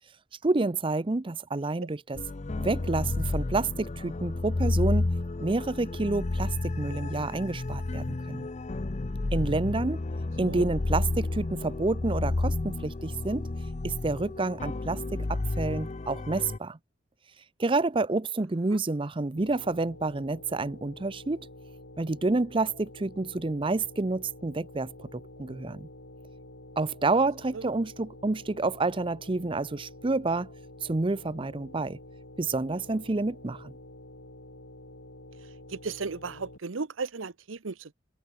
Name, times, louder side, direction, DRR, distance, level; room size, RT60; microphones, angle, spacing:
voice 1, 0.4-2.2 2.6-5.1 5.4-8.5 9.3-10.0 10.4-13.5 13.8-16.8 17.6-21.5 22.0-25.9 26.8-30.5 30.8-32.0 32.4-33.7, right 3 dB, 25° right, 0.6 m, -29 dB
sound 1, 2.1-16.6, left 2 dB, 35° left, 0.6 m, -31 dB
sound 2, 19.4-36.6, left 1 dB, 80° left, 5.4 m, -48 dB
voice 2, 35.7-37.9, right 4 dB, 85° right, 0.9 m, -35 dB
head